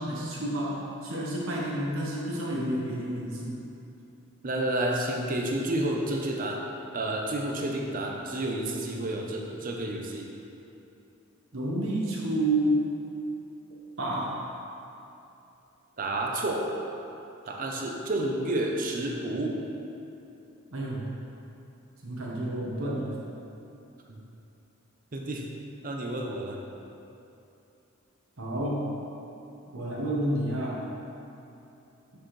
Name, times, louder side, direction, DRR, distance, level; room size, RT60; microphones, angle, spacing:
voice 1, 0.0-3.6 11.5-12.8 14.0-14.4 20.7-21.1 22.0-23.1 28.4-28.9 29.7-30.8, right 1 dB, 70° right, -4 dB, 1.2 m, -29 dB
voice 2, 4.4-10.3 16.0-16.7 17.5-19.7 24.1-24.2 25.1-25.5 25.8-26.6, right 1 dB, 40° right, 1 dB, 0.7 m, -30 dB
6.5 x 6.4 x 3.2 m, 2.8 s
head